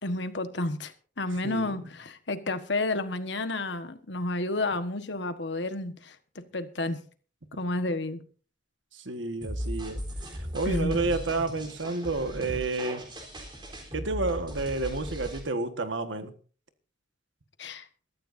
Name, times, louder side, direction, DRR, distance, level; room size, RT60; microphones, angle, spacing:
voice 1, 0.0-6.2 6.5-7.0 7.5-8.2 10.6-11.0 17.6-17.9, left 2 dB, 65° left, 1.4 m, -31 dB
voice 2, 1.4-1.9 8.9-10.0 10.3-13.0 13.9-16.3, right 3 dB, 80° right, 1.6 m, -30 dB
sound 1, 9.4-15.4, equal, 25° right, 3.8 m, -37 dB
22.5 x 13.5 x 2.7 m
head